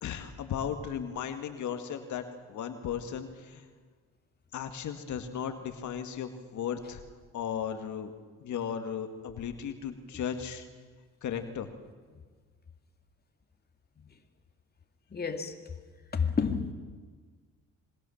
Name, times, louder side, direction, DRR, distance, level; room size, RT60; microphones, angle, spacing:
voice 1, 0.0-3.6 4.5-7.0 7.3-8.1 8.4-10.7 11.2-11.7, left 8 dB, 75° left, 7 dB, 2.0 m, -36 dB
voice 2, 15.1-15.5 16.1-16.7, left 5 dB, 30° left, 5 dB, 2.4 m, -29 dB
25.5 x 23.0 x 7.2 m, 1.5 s
cardioid pair, 90°, 30 cm